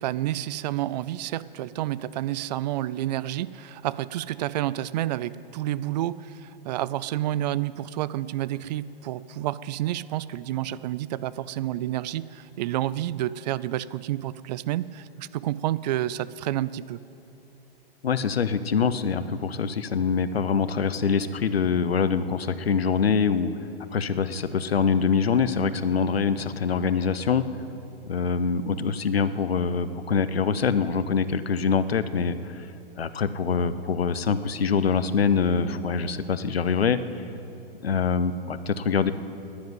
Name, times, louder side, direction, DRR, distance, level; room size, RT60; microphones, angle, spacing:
voice 1, 0.0-17.0, right 13 dB, 45° right, 17 dB, 0.4 m, -29 dB
voice 2, 18.0-23.5 23.9-27.4 28.1-32.7 33.0-37.0 37.8-39.1, left 6 dB, 85° left, 13 dB, 0.8 m, -24 dB
10.5 x 10.5 x 9.3 m, 2.7 s
hypercardioid pair, 115°, 30 cm